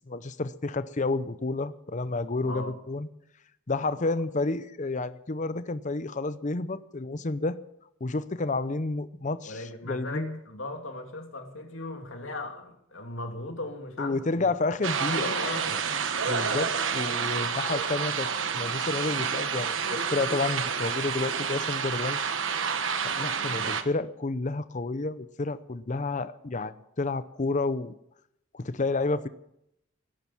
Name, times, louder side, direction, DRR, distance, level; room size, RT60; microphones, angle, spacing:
voice 1, 0.1-3.1 3.7-7.6 8.0-10.4 14.0-15.3 16.3-18.3 18.5-22.2 23.0-27.9 28.5-29.3, left 3 dB, 40° left, 13 dB, 0.7 m, -30 dB
voice 2, 2.4-2.8 3.9-4.1 9.4-14.6 15.0-15.9 23.5-23.8, left 2 dB, 75° left, 3 dB, 2.7 m, -38 dB
sound 1, 14.8-23.8, right 6 dB, 70° right, 1.2 m, -29 dB
17.5 x 10.5 x 7.2 m, 0.78 s
head